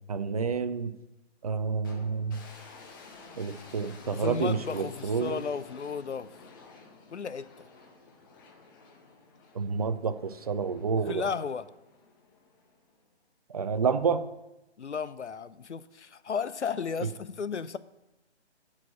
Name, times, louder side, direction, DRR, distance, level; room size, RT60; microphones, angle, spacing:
voice 1, 0.1-0.9 1.4-2.4 3.4-5.4 9.5-11.3 13.5-14.2, right 5 dB, 35° right, 11 dB, 0.5 m, -29 dB
sound 1, 1.8-13.1, left 4 dB, 20° left, 0.9 m, -52 dB
voice 2, 4.1-6.3 7.1-7.7 10.9-11.7 14.8-17.8, left 6 dB, 85° left, 15 dB, 0.7 m, -34 dB
7.5 x 6.3 x 7.5 m, 0.95 s
figure-of-eight pair, 150°, 34 cm